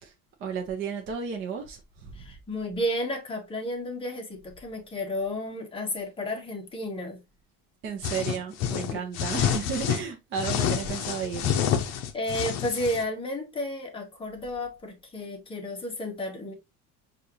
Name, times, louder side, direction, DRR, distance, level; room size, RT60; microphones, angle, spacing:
voice 1, 0.4-2.3 7.8-11.5, right 6 dB, 35° right, 0.7 m, -33 dB
voice 2, 2.1-7.2 8.9-9.0 12.1-16.5, left 1 dB, 15° left, 0.9 m, -32 dB
sound 1, 8.0-10.0 10.4-13.0, left 9 dB, 50° left, 0.7 m, -28 dB
6.4 x 2.5 x 2.7 m
cardioid pair, 180°, 35 cm